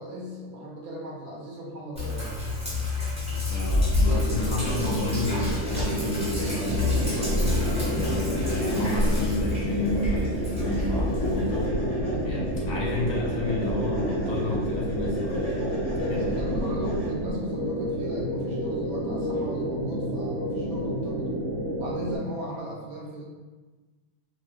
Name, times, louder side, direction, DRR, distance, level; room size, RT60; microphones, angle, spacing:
voice 1, 0.0-2.4 16.1-21.4 21.7-23.2, equal, 75° right, -3 dB, 1.1 m, -37 dB
Sink (filling or washing), 2.0-11.7, left 2 dB, 5° right, 0.5 m, -28 dB
voice 2, 3.5-11.8 12.2-16.5, left 2 dB, 70° left, -3 dB, 0.9 m, -32 dB
sound 1, 4.0-22.2, right 1 dB, 60° right, 0.7 m, -31 dB
sound 2, 5.7-17.3, equal, 35° left, 0.7 m, -32 dB
2.9 x 2.0 x 3.1 m, 1.3 s
omnidirectional pair, 1.6 m